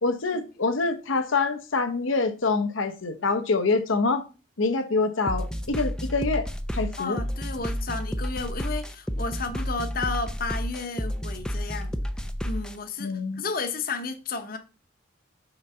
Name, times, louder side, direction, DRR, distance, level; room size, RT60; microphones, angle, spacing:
voice 1, 0.0-4.2 4.6-6.5 6.7-7.2 13.0-13.4, left 3 dB, 85° left, 0.9 m, -25 dB
sound 1, 5.3-12.8, equal, 5° left, 0.4 m, -31 dB
voice 2, 7.0-12.0 12.4-14.6, left 4 dB, 45° left, 0.8 m, -32 dB
5.8 x 3.9 x 5.6 m
head